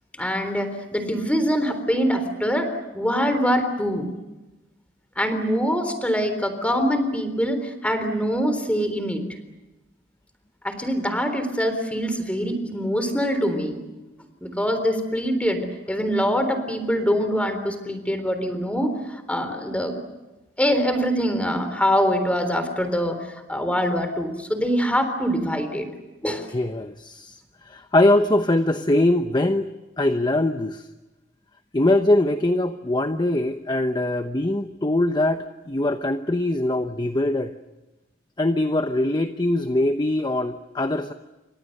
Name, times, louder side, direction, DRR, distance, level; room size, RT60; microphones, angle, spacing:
voice 1, 0.2-4.1 5.2-9.2 10.6-13.8 14.4-20.0 20.6-25.9 26.2-26.5, equal, 5° left, 8 dB, 3.8 m, -24 dB
voice 2, 26.5-27.4 27.6-29.7 30.0-30.9 31.7-37.5 38.4-41.1, left 1 dB, 25° left, 8 dB, 0.9 m, -22 dB
29.0 x 25.5 x 6.7 m, 1.1 s
head